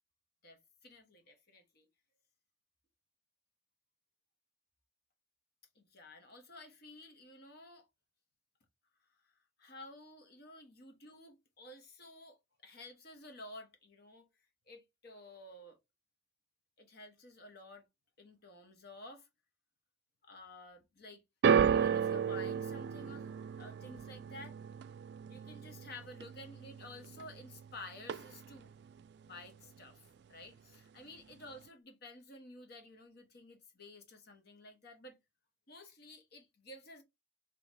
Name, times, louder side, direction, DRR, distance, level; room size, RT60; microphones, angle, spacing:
voice 1, 0.4-1.9 5.7-7.9 9.6-12.4 12.6-14.3 14.7-15.8 16.8-17.8 18.2-19.3 20.2-21.2 21.6-23.3 23.6-24.6 25.3-28.7 29.2-35.2 35.7-37.0, left 2 dB, 55° left, 1.2 m, -52 dB
sound 1, 21.4-27.7 28.0-28.6 29.4-29.5, right 7 dB, 60° right, 0.3 m, -33 dB
3.9 x 3.1 x 3.0 m
head